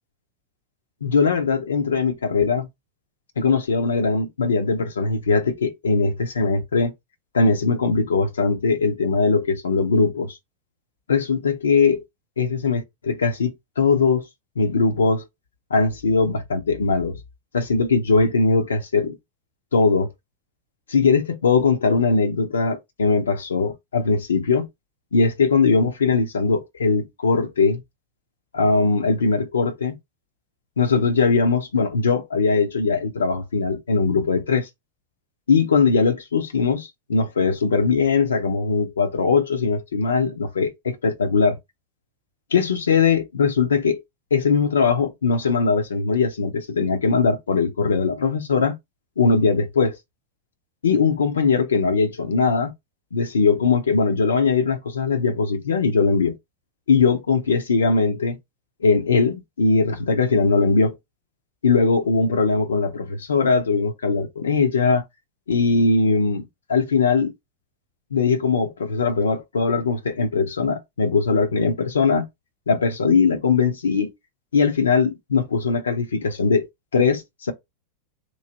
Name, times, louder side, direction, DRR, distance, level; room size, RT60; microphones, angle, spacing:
voice 1, 1.0-2.7 3.4-6.9 7.3-10.4 11.1-12.0 12.4-14.2 14.6-15.2 15.7-17.2 17.5-19.2 19.7-20.1 20.9-24.7 25.1-27.8 28.5-30.0 30.8-34.7 35.5-41.6 42.5-44.0 44.3-48.7 49.2-50.0 50.8-52.7 53.1-56.3 56.9-58.4 58.8-61.0 61.6-65.0 65.5-67.3 68.1-72.2 72.7-74.1 74.5-76.7 76.9-77.5, left 4 dB, 70° left, 0.6 m, -20 dB
3.1 x 2.6 x 3.9 m
figure-of-eight pair, 90°, 0 cm